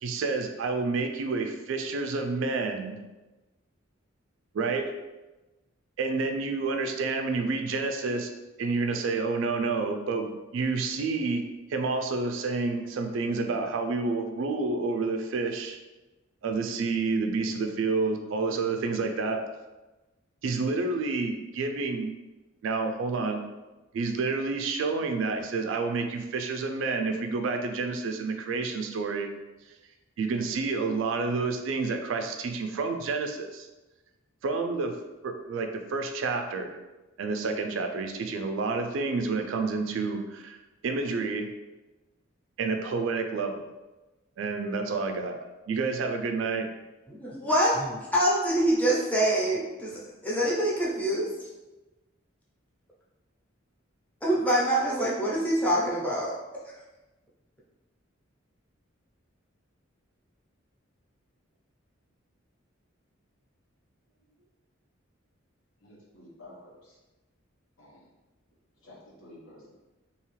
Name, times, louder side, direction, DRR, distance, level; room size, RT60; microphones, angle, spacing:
voice 1, 0.0-3.0 4.5-4.9 6.0-8.3 8.6-11.4 11.7-15.8 16.4-19.4 20.4-22.1 22.6-23.4 23.9-29.3 30.2-33.7 34.4-35.0 35.2-36.8 37.2-40.6 40.8-41.5 42.6-43.7 44.4-45.4 45.7-46.7, right 4 dB, 65° right, 5 dB, 0.3 m, -29 dB
voice 2, 47.1-51.5 54.2-56.3 56.6-56.7, right 1 dB, 10° left, -6 dB, 0.5 m, -25 dB
voice 3, 65.8-67.0 67.8-68.1 68.8-69.7, left 1 dB, 85° left, -4 dB, 0.9 m, -51 dB
2.8 x 2.3 x 3.0 m, 1.1 s
head